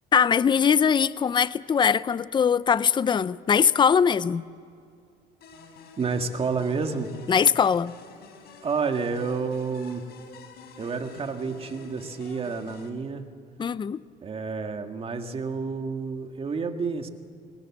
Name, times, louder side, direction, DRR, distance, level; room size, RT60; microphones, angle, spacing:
voice 1, 0.1-4.4 7.3-7.9 13.6-14.0, left 7 dB, 25° left, 0.5 m, -21 dB
sound 1, 5.4-12.9, left 5 dB, 75° left, 3.8 m, -48 dB
voice 2, 6.0-7.1 8.6-10.0 10.8-13.2 14.2-17.1, right 5 dB, 35° right, 1.9 m, -29 dB
22.0 x 21.0 x 7.3 m
cardioid pair, 110°, 17 cm